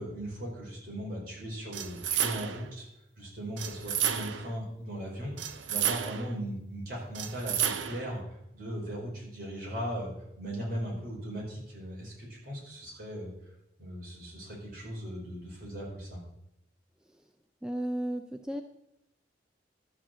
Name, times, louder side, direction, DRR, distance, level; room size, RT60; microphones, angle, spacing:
voice 1, 0.0-2.9 3.2-13.3 13.8-16.2, equal, 50° right, -4 dB, 4.6 m, -38 dB
sound 1, 1.7-2.7 3.6-4.5 5.4-6.4 7.1-8.1, right 9 dB, 80° right, 0.7 m, -32 dB
voice 2, 17.6-18.6, right 1 dB, 5° right, 5 dB, 0.4 m, -33 dB
12.0 x 5.0 x 7.5 m, 0.84 s
head